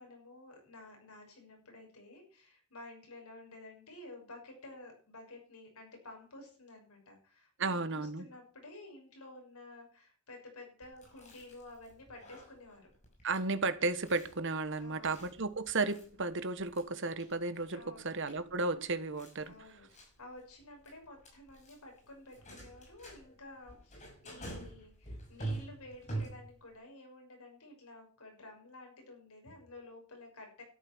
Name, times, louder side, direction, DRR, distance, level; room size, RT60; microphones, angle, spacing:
voice 1, 0.0-12.9 14.8-15.2 17.7-18.2 19.4-30.6, left 2 dB, 85° left, 2 dB, 6.5 m, -52 dB
voice 2, 7.6-8.2 13.2-19.5, right 3 dB, 55° right, 12 dB, 1.4 m, -34 dB
Chewing mastication, 10.8-26.7, right 2 dB, 30° left, 6.0 m, -47 dB
13.0 x 11.0 x 6.2 m, 0.42 s
head